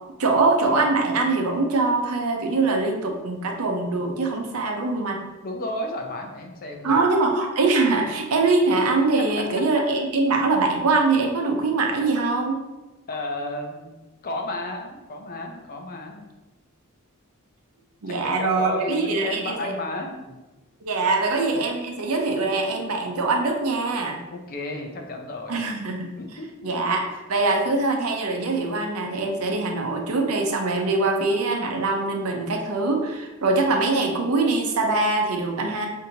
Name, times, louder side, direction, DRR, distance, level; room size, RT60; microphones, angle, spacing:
voice 1, 0.2-5.2 6.8-12.6 18.0-19.7 20.8-24.2 25.5-26.1 26.6-27.0 27.3-35.9, right 3 dB, 75° right, 2 dB, 0.6 m, -23 dB
voice 2, 5.4-7.1 9.2-9.4 13.1-16.3 18.1-20.4 24.3-25.7 26.2-26.7, left 2 dB, 40° left, 3 dB, 0.5 m, -33 dB
5.1 x 2.7 x 2.8 m, 1.1 s
head